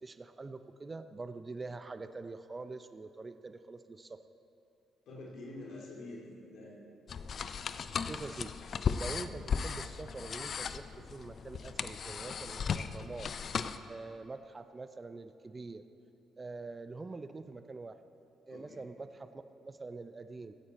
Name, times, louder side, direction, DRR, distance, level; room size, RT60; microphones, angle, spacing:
voice 1, 0.0-4.2 8.1-8.5 9.0-13.3 13.9-15.8 16.4-18.0 18.5-20.5, right 3 dB, 25° right, 10 dB, 0.5 m, -45 dB
voice 2, 5.1-6.8 9.1-9.3 18.5-18.8, left 2 dB, 75° left, -4 dB, 2.2 m, -47 dB
sound 1, 7.1-13.8, left 6 dB, 50° left, 0.4 m, -36 dB
15.5 x 9.6 x 4.1 m, 2.7 s
cardioid pair, 90°, 0 cm